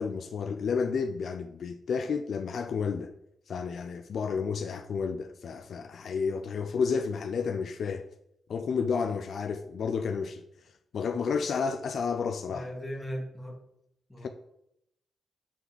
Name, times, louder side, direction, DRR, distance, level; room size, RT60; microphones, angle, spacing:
voice 1, 0.0-3.1 3.5-8.1 8.5-10.4 10.9-12.7 14.2-14.3, left 5 dB, 70° left, 0.4 m, -31 dB
voice 2, 12.5-13.6 14.1-14.3, equal, 10° left, 1.7 m, -38 dB
7.7 x 3.4 x 4.0 m
cardioid pair, 60°, 0 cm